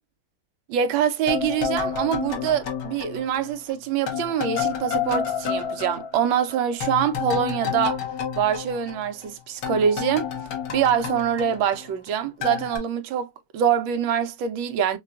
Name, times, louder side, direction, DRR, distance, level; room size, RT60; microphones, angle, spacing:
voice 1, 0.7-8.1 8.4-10.3 10.7-15.0, right 8 dB, 85° right, 1.4 m, -24 dB
sound 1, 1.3-3.7 4.1-9.3 9.6-12.1 12.4-12.8, left 8 dB, 55° left, 1.2 m, -30 dB
5.6 x 2.2 x 2.3 m
omnidirectional pair, 2.1 m